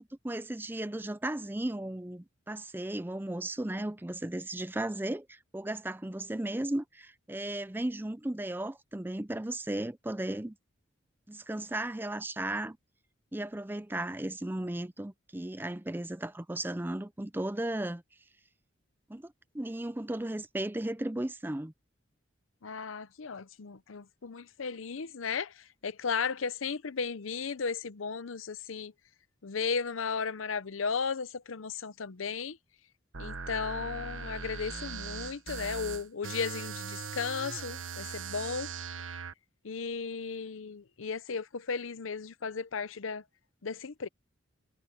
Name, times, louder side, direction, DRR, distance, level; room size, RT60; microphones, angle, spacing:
voice 1, 0.0-10.6 11.3-12.8 13.3-18.0 19.1-21.7, right 1 dB, 10° right, 0.5 m, -35 dB
voice 2, 22.6-28.9 29.4-32.6 33.2-38.7 39.6-43.2 43.6-44.1, left 5 dB, 90° left, 0.7 m, -35 dB
sound 1, 33.1-39.3, right 5 dB, 80° right, 1.2 m, -40 dB
head